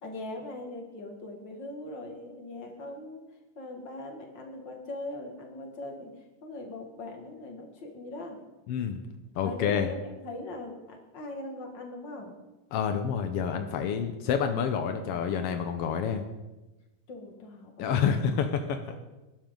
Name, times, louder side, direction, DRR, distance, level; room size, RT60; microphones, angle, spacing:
voice 1, 0.0-3.2 3.6-6.1 6.4-8.4 9.4-12.3 17.1-18.2 18.9-19.1, left 2 dB, 35° left, 1 dB, 2.3 m, -41 dB
voice 2, 8.7-9.0 9.4-9.9 12.7-16.2 17.8-18.8, left 7 dB, 85° left, 7 dB, 1.3 m, -28 dB
22.0 x 12.0 x 3.9 m, 1.1 s
omnidirectional pair, 3.9 m